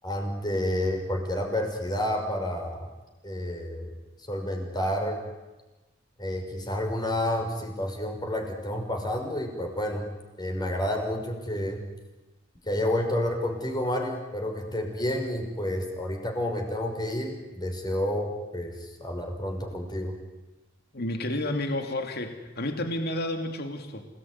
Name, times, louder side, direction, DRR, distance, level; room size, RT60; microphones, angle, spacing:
voice 1, 0.0-2.9 3.2-3.9 4.3-5.2 6.2-10.1 10.4-11.8 12.7-20.1, left 1 dB, 20° left, 3 dB, 5.9 m, -30 dB
voice 2, 20.9-24.1, left 1 dB, 55° left, 6 dB, 2.8 m, -31 dB
29.0 x 19.5 x 9.8 m, 1.1 s
head